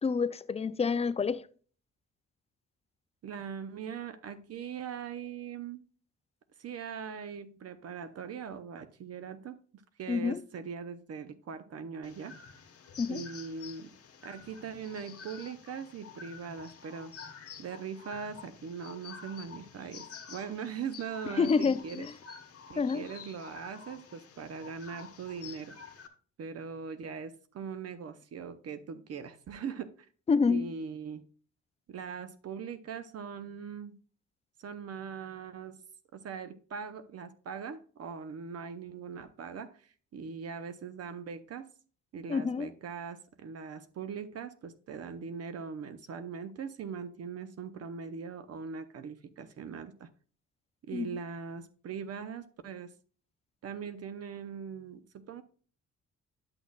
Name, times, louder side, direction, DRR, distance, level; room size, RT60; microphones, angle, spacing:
voice 1, 0.0-1.4 10.1-10.4 13.0-13.2 21.4-22.1 22.8-23.1 30.3-30.7 42.3-42.7 50.9-51.1, left 5 dB, 20° left, 0.4 m, -28 dB
voice 2, 3.2-5.8 6.6-12.3 13.1-13.9 14.2-22.1 22.7-25.8 26.4-30.1 30.5-31.2 31.9-34.0 34.6-35.8 36.1-41.7 42.1-50.1 50.9-52.9 53.6-55.4, right 6 dB, 55° right, 0.7 m, -41 dB
sound 1, 12.0-26.1, left 6 dB, 50° left, 1.2 m, -49 dB
10.5 x 6.3 x 2.4 m
cardioid pair, 90°, 30 cm